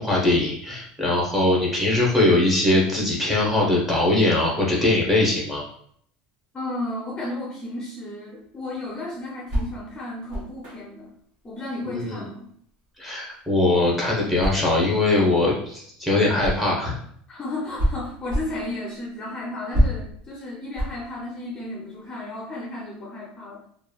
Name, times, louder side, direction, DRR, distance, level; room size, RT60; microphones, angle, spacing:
voice 1, 0.0-5.6 11.9-12.2 13.0-16.9, left 2 dB, 5° right, -4 dB, 0.9 m, -21 dB
voice 2, 6.5-11.1 11.4-12.5 17.3-23.6, left 1 dB, 25° left, -3 dB, 0.5 m, -33 dB
sound 1, 8.4-16.9 17.3-22.1, equal, 45° right, 1.1 m, -29 dB
3.1 x 2.2 x 2.3 m, 0.64 s
supercardioid pair, 135°, 3 cm